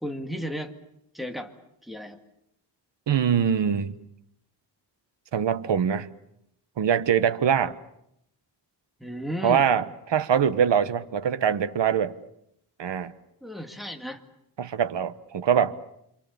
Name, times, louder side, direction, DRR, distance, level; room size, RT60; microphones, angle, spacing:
voice 1, 0.0-0.7 1.1-1.5 1.8-2.2 9.0-9.6 13.4-14.2, equal, ahead, 2.1 m, -34 dB
voice 2, 3.1-3.9 5.3-6.1 6.8-7.8 9.4-12.1 12.8-13.1 14.6-15.8, right 8 dB, 70° right, 1.2 m, -23 dB
27.5 x 27.0 x 7.0 m
wide cardioid pair, 140°, 44 cm